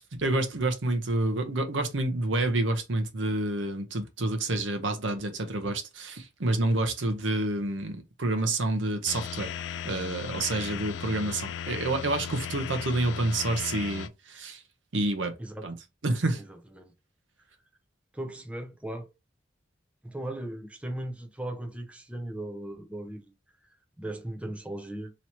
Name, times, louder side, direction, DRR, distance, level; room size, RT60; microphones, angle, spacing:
voice 1, 0.0-9.5 9.8-14.6 14.9-15.3 15.6-15.7 16.0-16.4, right 2 dB, 90° right, 0.9 m, -28 dB
sound 1, 9.1-14.1, left 8 dB, 75° left, 0.3 m, -36 dB
voice 2, 16.4-16.9 18.1-19.1 20.0-23.3 24.0-25.1, right 1 dB, 5° right, 0.5 m, -37 dB
3.1 x 2.9 x 4.3 m
head